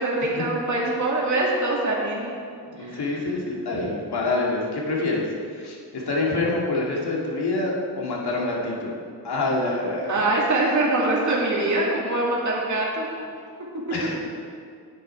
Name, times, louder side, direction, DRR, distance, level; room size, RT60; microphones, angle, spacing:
voice 1, 0.0-2.3 2.8-3.2 10.1-13.1, right 2 dB, 45° right, -4 dB, 2.3 m, -24 dB
voice 2, 2.8-5.2 5.5-8.9 9.2-10.2 13.9-14.2, left 2 dB, 70° left, -3 dB, 2.2 m, -26 dB
9.8 x 8.7 x 4.4 m, 2.2 s
cardioid pair, 90°, 40 cm